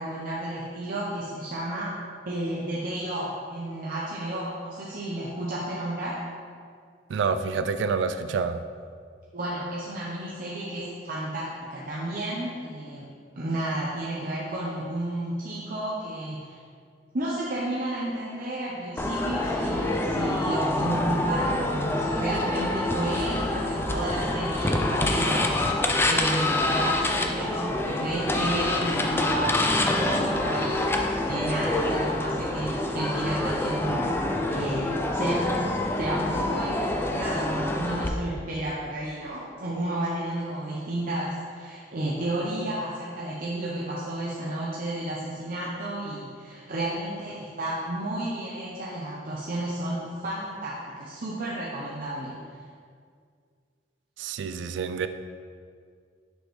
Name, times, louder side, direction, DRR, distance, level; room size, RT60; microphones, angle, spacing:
voice 1, 0.0-2.0 2.2-6.2 9.3-16.6 17.1-30.9 31.3-34.2 34.5-35.6 36.0-52.4, right 1 dB, 50° right, -6 dB, 0.7 m, -32 dB
voice 2, 7.1-8.6 54.2-55.1, right 5 dB, 75° right, 10 dB, 0.3 m, -27 dB
sound 1, 19.0-38.1, left 1 dB, 15° left, 0.4 m, -26 dB
6.3 x 5.2 x 3.2 m, 2.1 s
head